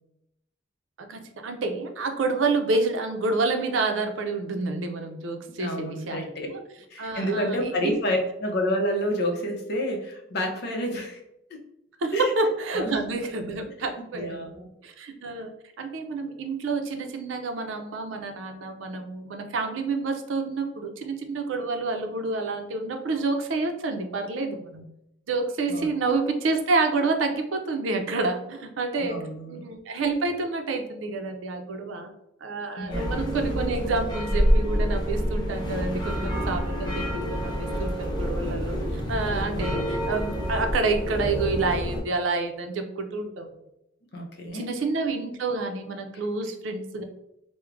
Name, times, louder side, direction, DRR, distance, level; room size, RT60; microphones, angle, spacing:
voice 1, 1.0-6.6 7.0-8.0 12.0-14.4 14.8-24.9 25.3-29.2 29.5-32.1 32.4-43.5 44.5-47.0, right 3 dB, 80° right, 5 dB, 0.5 m, -28 dB
voice 2, 5.6-6.5 6.9-11.2 11.5-11.6 12.1-12.3 12.7-13.2 14.0-14.6 25.7-25.9 29.0-29.6 32.8-33.1 39.4-39.7 44.1-44.7, equal, 60° left, 2 dB, 0.6 m, -29 dB
sound 1, 32.9-42.0, equal, 25° left, 0.7 m, -27 dB
4.4 x 2.1 x 2.4 m, 0.83 s
head